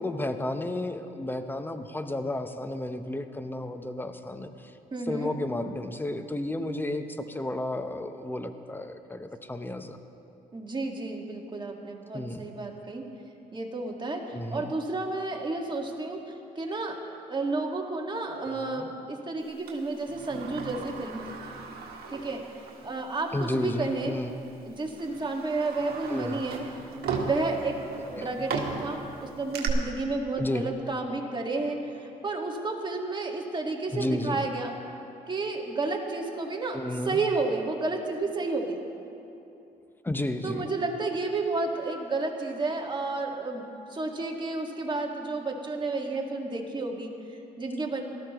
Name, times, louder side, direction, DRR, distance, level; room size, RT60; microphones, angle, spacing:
voice 1, 0.0-4.7 5.0-10.0 12.1-12.5 14.3-14.7 18.5-18.9 23.3-24.3 26.1-26.4 28.1-28.3 30.4-30.8 33.9-34.5 36.7-37.2 40.0-40.7, left 1 dB, 10° left, 8 dB, 0.9 m, -32 dB
voice 2, 4.9-5.3 10.5-13.0 13.5-17.0 17.3-21.2 22.1-22.4 22.8-24.2 24.6-26.6 27.2-27.8 28.1-34.7 35.3-36.8 37.1-38.8 40.4-43.6 43.9-48.0, right 3 dB, 30° right, 1 dB, 1.8 m, -31 dB
Sliding door, 19.7-22.9 23.3-23.4 24.3-24.5 25.0-29.7, right 5 dB, 70° right, 1.6 m, -36 dB
18.0 x 13.0 x 3.1 m, 2.8 s
supercardioid pair, 65°, 17 cm